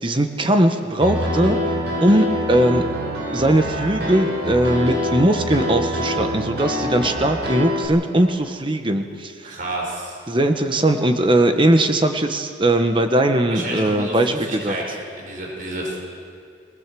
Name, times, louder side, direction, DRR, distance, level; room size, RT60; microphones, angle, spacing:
voice 1, 0.0-1.6 2.0-2.8 3.3-9.0 10.3-14.7, right 1 dB, 30° right, 6 dB, 1.1 m, -19 dB
Piano, 1.0-7.9, left 1 dB, 65° right, 7.2 m, -25 dB
voice 2, 9.4-10.2 13.5-16.0, right 1 dB, 50° right, -1 dB, 4.8 m, -30 dB
22.0 x 20.0 x 7.6 m, 2.3 s
head